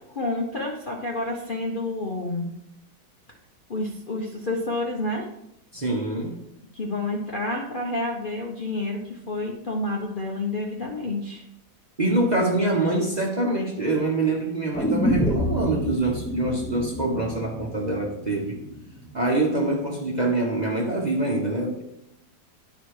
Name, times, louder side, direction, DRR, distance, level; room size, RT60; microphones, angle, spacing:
voice 1, 0.0-2.5 3.7-5.3 6.7-11.4, left 2 dB, 40° left, -1 dB, 0.8 m, -29 dB
voice 2, 5.7-6.4 12.0-18.6 19.1-21.8, right 2 dB, 30° right, -1 dB, 1.0 m, -25 dB
sound 1, 14.7-18.8 19.1-19.2, equal, 10° left, 0.5 m, -28 dB
10.0 x 4.9 x 4.8 m, 0.80 s
omnidirectional pair, 2.0 m